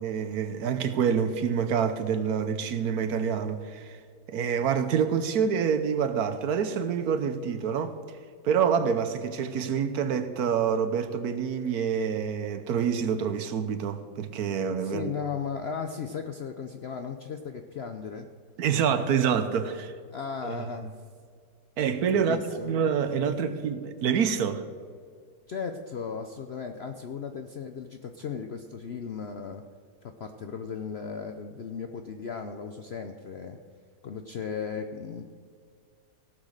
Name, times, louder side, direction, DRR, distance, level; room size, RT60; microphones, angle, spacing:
voice 1, 0.0-4.0 4.3-8.0 8.4-15.1 18.6-19.9 20.4-20.6 21.8-22.4 22.6-24.6, right 7 dB, 70° right, 1.2 m, -27 dB
voice 2, 14.8-18.3 20.1-21.0 22.1-22.7 25.5-29.6 30.0-33.6 34.0-35.2, left 6 dB, 65° left, 0.6 m, -36 dB
17.0 x 6.2 x 6.5 m
omnidirectional pair, 1.8 m